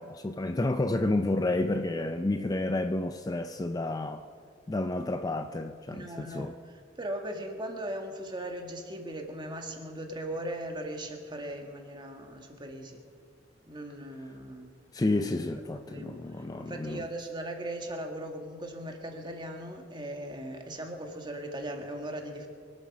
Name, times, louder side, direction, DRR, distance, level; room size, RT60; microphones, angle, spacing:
voice 1, 0.0-4.2 4.7-6.5 14.9-17.1, left 2 dB, 20° left, 0.5 m, -30 dB
voice 2, 5.9-13.0 13.7-14.7 15.9-22.5, right 1 dB, 25° right, 1.7 m, -39 dB
23.5 x 8.7 x 6.1 m
head